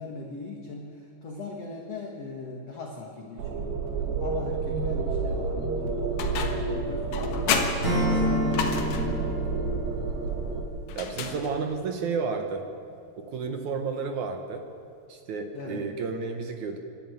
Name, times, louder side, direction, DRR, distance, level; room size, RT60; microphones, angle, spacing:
voice 1, 0.0-3.8 4.2-7.6 7.9-9.3 15.5-15.9, left 2 dB, 50° left, 1 dB, 2.1 m, -39 dB
sound 1, 3.4-10.6, right 4 dB, 85° right, 4.1 m, -30 dB
sound 2, 6.2-6.7 7.1-9.2 10.9-11.8, left 6 dB, 85° left, 3.7 m, -31 dB
Acoustic guitar / Strum, 7.8-10.9, left 1 dB, 15° left, 4.0 m, -29 dB
voice 2, 11.0-12.6 13.2-14.7 15.1-16.8, right 5 dB, 65° right, 5 dB, 1.9 m, -31 dB
26.0 x 12.5 x 9.2 m, 2.5 s
omnidirectional pair, 4.7 m